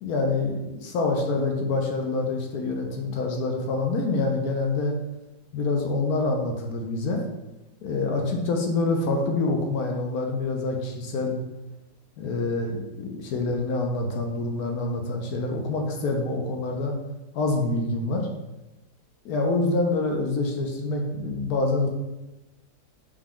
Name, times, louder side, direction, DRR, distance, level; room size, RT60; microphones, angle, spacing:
voice 1, 0.0-5.0 5.5-7.3 7.8-11.4 12.2-16.9 17.3-18.3 19.2-21.9, left 3 dB, 70° left, 2 dB, 1.0 m, -26 dB
4.9 x 2.2 x 3.6 m, 1.0 s
omnidirectional pair, 1.8 m